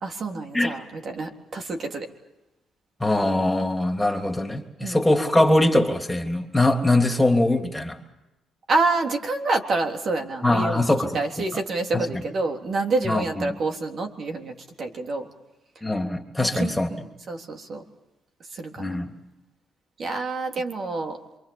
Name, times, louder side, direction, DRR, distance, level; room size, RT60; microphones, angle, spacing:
voice 1, 0.0-2.1 4.8-5.0 8.7-10.8 11.1-15.3 16.4-16.7 17.3-17.8 18.5-19.0 20.0-21.2, right 3 dB, 55° right, 3 dB, 3.6 m, -27 dB
voice 2, 3.0-8.0 10.4-11.2 11.9-12.2 13.0-13.6 15.8-16.9 18.8-19.1, left 1 dB, 10° left, 4 dB, 3.3 m, -22 dB
28.0 x 25.0 x 7.3 m, 0.96 s
cardioid pair, 90°, 0 cm